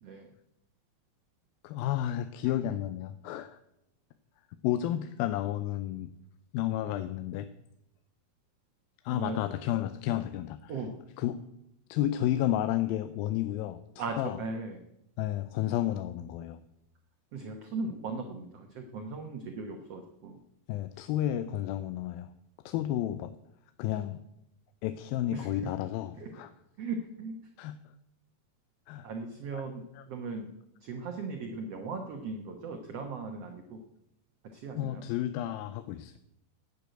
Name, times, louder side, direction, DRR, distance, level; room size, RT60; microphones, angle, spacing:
voice 1, 1.6-3.6 4.6-6.1 6.5-7.5 9.0-10.7 11.2-11.4 11.9-13.8 14.2-14.4 15.2-16.6 20.7-22.3 22.7-23.3 23.8-24.2 24.8-26.5 27.6-27.8 28.9-29.1 29.5-29.6 30.0-30.1 34.8-36.2, left 12 dB, 85° left, 11 dB, 2.4 m, -31 dB
voice 2, 14.0-14.8 17.3-20.4 22.7-22.8 23.1-23.2 25.3-25.8 26.2-26.3 26.8-27.4 29.0-30.5 30.8-33.8 34.5-35.1, right 3 dB, 60° right, 4 dB, 1.7 m, -38 dB
10.5 x 8.5 x 9.0 m, 0.82 s
omnidirectional pair, 4.1 m